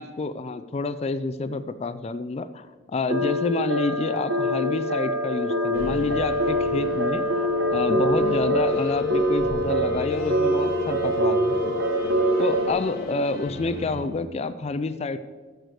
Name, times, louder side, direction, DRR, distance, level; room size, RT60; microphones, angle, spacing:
voice 1, 0.0-11.8 12.4-15.2, left 3 dB, 30° left, 12 dB, 0.4 m, -28 dB
sound 1, 3.1-12.7, equal, 65° right, 1.1 m, -24 dB
sound 2, 5.7-14.0, left 2 dB, 50° left, 1.4 m, -36 dB
11.0 x 8.0 x 4.7 m, 1.4 s
head